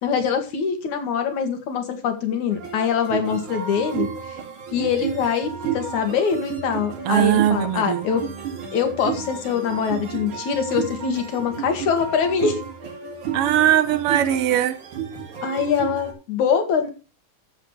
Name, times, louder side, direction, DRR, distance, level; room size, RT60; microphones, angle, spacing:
voice 1, 0.0-4.1 4.7-8.2 8.7-12.6 15.4-16.9, left 6 dB, 75° left, 3.3 m, -23 dB
sound 1, 2.5-16.1, right 7 dB, 80° right, 3.9 m, -32 dB
voice 2, 7.0-8.1 13.3-14.8, right 11 dB, 65° right, 1.6 m, -20 dB
14.0 x 7.4 x 3.3 m
omnidirectional pair, 3.4 m